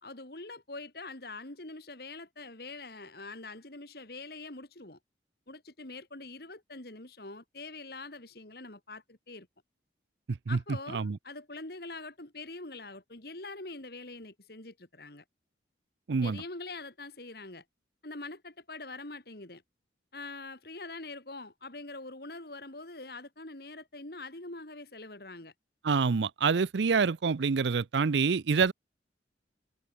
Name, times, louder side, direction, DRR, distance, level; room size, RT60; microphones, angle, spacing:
voice 1, 0.0-5.0 5.5-9.5 10.5-15.2 16.2-17.6 18.0-19.6 20.1-25.5, left 3 dB, 55° left, 2.7 m, -44 dB
voice 2, 10.3-10.6 10.9-11.2 16.1-16.4 25.8-28.7, right 5 dB, 75° right, 0.5 m, -26 dB
head